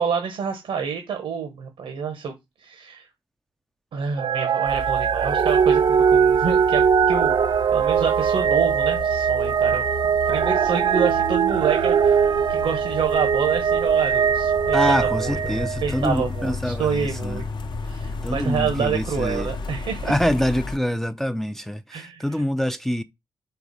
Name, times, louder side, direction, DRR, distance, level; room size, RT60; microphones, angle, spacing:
voice 1, 0.0-2.3 2.6-3.0 3.9-7.3 7.7-9.8 10.3-17.4 17.8-20.1 21.9-22.4, right 6 dB, 85° right, 1.1 m, -27 dB
sound 1, 4.2-16.1 16.7-16.8, right 7 dB, 60° right, 0.5 m, -21 dB
sound 2, 4.6-20.8, left 3 dB, 60° left, 0.8 m, -34 dB
voice 2, 14.7-17.4 18.2-19.5 20.0-23.0, equal, 5° left, 0.4 m, -25 dB
4.6 x 4.0 x 5.3 m
cardioid pair, 95°, 9 cm